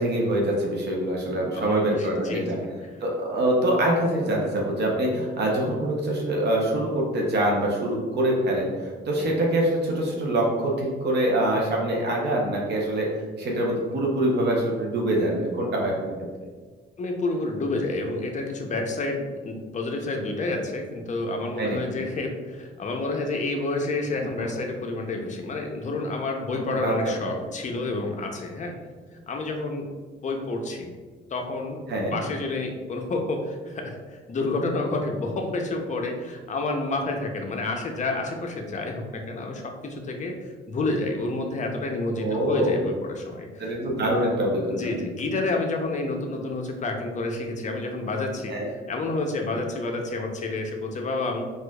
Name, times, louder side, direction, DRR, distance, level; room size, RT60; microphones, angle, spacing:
voice 1, 0.0-2.6 3.0-13.1 13.4-16.1 21.6-21.8 26.8-26.9 27.2-27.3 31.9-32.2 42.2-42.7 43.6-44.7 48.5-48.7, right 1 dB, 60° right, -2 dB, 0.7 m, -24 dB
voice 2, 1.5-2.7 9.2-9.3 17.0-28.7 29.3-29.9 30.2-30.9 31.3-31.8 32.1-40.4 40.7-43.6 44.7-51.4, left 2 dB, 40° left, 2 dB, 0.6 m, -29 dB
4.3 x 2.4 x 2.3 m, 1.4 s
cardioid pair, 90°, 20 cm